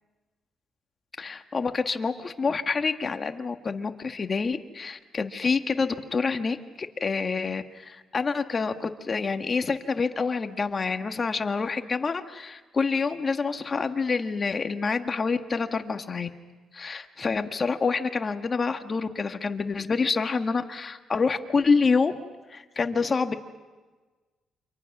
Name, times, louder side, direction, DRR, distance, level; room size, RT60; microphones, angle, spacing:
voice 1, 1.2-16.3 16.7-22.2 22.5-23.3, left 4 dB, 35° left, 7 dB, 1.6 m, -27 dB
29.0 x 26.0 x 6.1 m, 1.3 s
cardioid pair, 90°, 0 cm